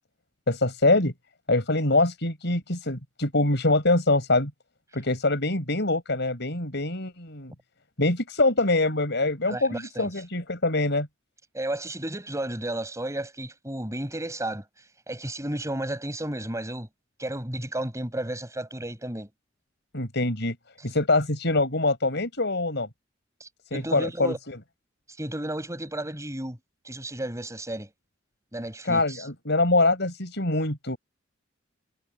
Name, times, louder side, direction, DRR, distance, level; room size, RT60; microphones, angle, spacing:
voice 1, 0.5-1.1 1.5-4.5 4.9-7.5 8.0-11.1 19.9-20.6 20.8-22.9 23.7-24.6 28.8-31.0, left 2 dB, 60° left, 7.0 m, -24 dB
voice 2, 9.5-10.2 11.5-16.9 17.2-19.3 20.8-20.9 23.4-24.4 25.1-26.6 26.8-27.9 28.5-29.3, right 1 dB, 15° right, 7.5 m, -33 dB
head